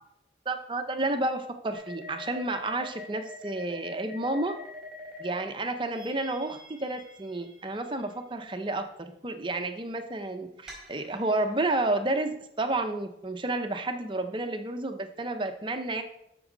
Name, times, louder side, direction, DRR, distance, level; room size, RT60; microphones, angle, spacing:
voice 1, 0.5-4.5 5.2-16.0, right 2 dB, 25° right, 7 dB, 0.7 m, -31 dB
sound 1, 1.7-5.4 5.9-8.1 10.7-11.7, left 2 dB, 5° right, 4.1 m, -45 dB
13.5 x 6.1 x 3.9 m, 0.79 s
head